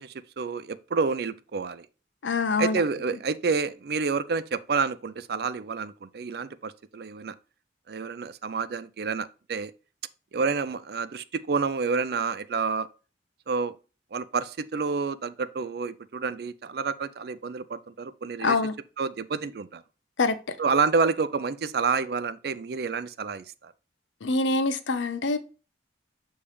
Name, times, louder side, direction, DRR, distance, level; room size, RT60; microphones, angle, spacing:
voice 1, 0.0-1.9 2.6-7.4 7.9-9.7 10.3-12.9 13.5-13.7 14.1-18.6 19.0-19.8 20.6-23.7, right 4 dB, 55° right, 0.4 m, -29 dB
voice 2, 2.2-2.8 18.4-18.7 20.2-20.6 24.2-25.4, left 3 dB, 85° left, 0.7 m, -25 dB
7.0 x 3.3 x 4.9 m
head